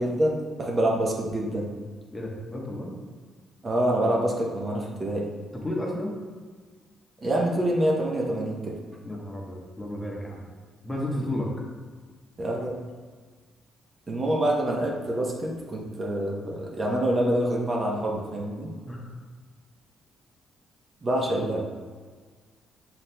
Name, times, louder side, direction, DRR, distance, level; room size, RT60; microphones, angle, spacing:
voice 1, 0.0-1.8 3.6-5.3 7.2-8.8 12.4-12.8 14.1-18.7 21.0-21.7, right 1 dB, 35° right, -2 dB, 0.8 m, -26 dB
voice 2, 2.1-2.9 5.6-6.1 9.0-10.4 10.8-11.5 18.9-19.0, left 1 dB, 15° left, -3 dB, 1.0 m, -32 dB
5.8 x 4.1 x 2.2 m, 1.5 s
cardioid pair, 90°, 0 cm